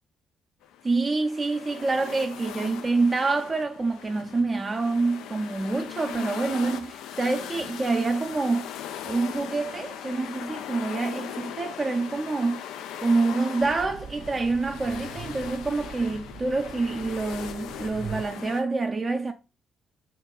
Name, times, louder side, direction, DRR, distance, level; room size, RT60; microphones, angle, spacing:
sound 1, 0.6-18.6, left 10 dB, 70° left, 0.3 m, -39 dB
voice 1, 0.8-8.7 9.1-12.6 13.0-19.3, right 3 dB, 35° right, 0.4 m, -27 dB
Train, 13.6-18.5, right 6 dB, 50° right, 0.8 m, -42 dB
2.8 x 2.5 x 3.7 m
figure-of-eight pair, 40°, 0 cm